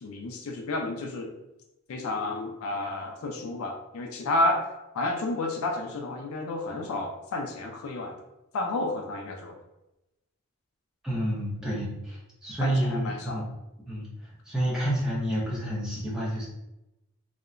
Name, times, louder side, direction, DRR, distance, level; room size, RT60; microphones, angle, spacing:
voice 1, 0.0-1.3 1.9-4.6 4.9-8.2 8.5-9.5 12.6-13.4, left 2 dB, 75° left, 2 dB, 0.4 m, -31 dB
voice 2, 11.0-13.4 13.9-14.1 14.5-16.5, right 1 dB, 5° right, -7 dB, 0.6 m, -29 dB
2.7 x 2.1 x 2.4 m, 0.94 s
head